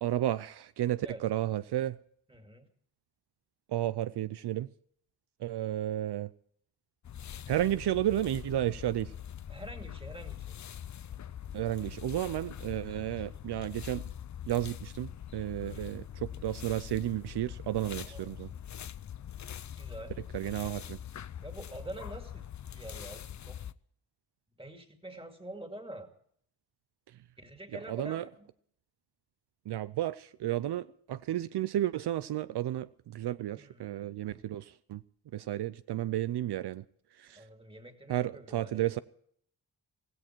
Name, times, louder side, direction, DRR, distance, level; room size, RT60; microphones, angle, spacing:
voice 1, 0.0-2.0 3.7-4.7 5.4-6.3 7.5-9.1 11.5-14.0 14.5-18.5 20.3-21.0 27.7-28.2 29.7-35.0 35.3-36.8 37.1-37.4 38.1-39.0, right 13 dB, 75° right, 0.6 m, -32 dB
voice 2, 2.3-2.7 9.5-10.5 15.5-16.0 18.0-18.3 19.8-20.1 21.4-22.5 22.7-23.6 24.6-26.1 27.4-28.5 33.5-34.2 37.3-39.0, right 1 dB, 15° right, 2.3 m, -46 dB
sound 1, 7.0-23.7, left 10 dB, 45° left, 0.5 m, -43 dB
17.0 x 16.5 x 4.5 m
wide cardioid pair, 105°, 41 cm